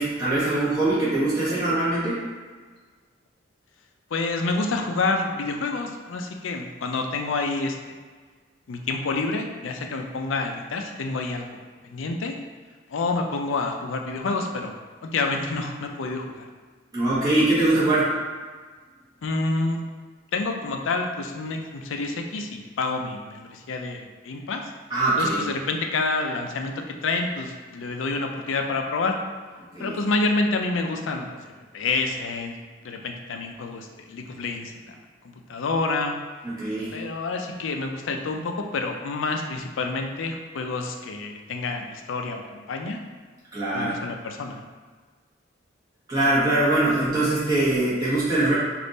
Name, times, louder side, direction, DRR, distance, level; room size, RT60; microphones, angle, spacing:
voice 1, 0.0-2.2 16.9-18.1 24.9-25.5 29.7-30.0 36.4-36.9 43.5-44.0 46.1-48.5, right 2 dB, 20° right, -11 dB, 1.2 m, -22 dB
voice 2, 4.1-7.8 8.7-11.6 11.9-12.4 12.9-14.8 15.0-16.5 19.2-19.8 20.3-24.6 25.2-29.2 29.8-31.4 31.7-32.5 32.8-35.0 35.5-36.2 36.9-43.0 43.7-44.6, left 3 dB, 80° left, 3 dB, 0.4 m, -28 dB
3.5 x 2.5 x 3.9 m, 1.5 s
head